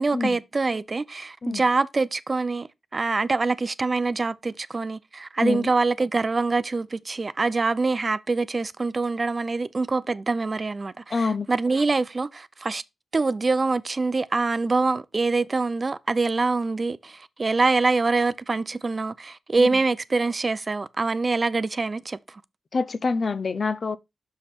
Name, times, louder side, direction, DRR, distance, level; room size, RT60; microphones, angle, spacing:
voice 1, 0.0-2.7 2.9-12.8 13.1-22.2, right 3 dB, 45° right, 0.5 m, -25 dB
voice 2, 11.1-11.5 19.6-19.7 22.7-24.0, left 4 dB, 60° left, 0.5 m, -26 dB
5.6 x 5.1 x 4.2 m
supercardioid pair, 40°, 0 cm